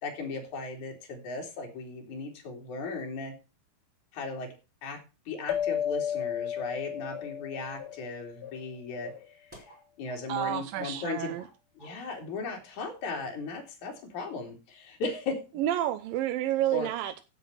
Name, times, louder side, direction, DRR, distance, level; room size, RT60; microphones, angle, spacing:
voice 1, 0.0-3.3 4.1-4.5 4.8-5.0 5.3-9.1 9.4-9.6 10.0-11.4 11.8-15.4 16.7-16.9, left 3 dB, 50° left, 3.9 m, -37 dB
sound 1, 5.5-8.5, left 9 dB, 75° left, 2.5 m, -33 dB
sound 2, 7.1-7.4 7.8-8.1 8.4-8.7 9.0-10.2 10.5-10.7 10.9-11.5 11.8-12.0, left 7 dB, 5° right, 4.7 m, -49 dB
voice 2, 10.3-11.4 15.6-17.2, right 12 dB, 75° right, 2.1 m, -29 dB
15.5 x 6.2 x 5.6 m
omnidirectional pair, 4.6 m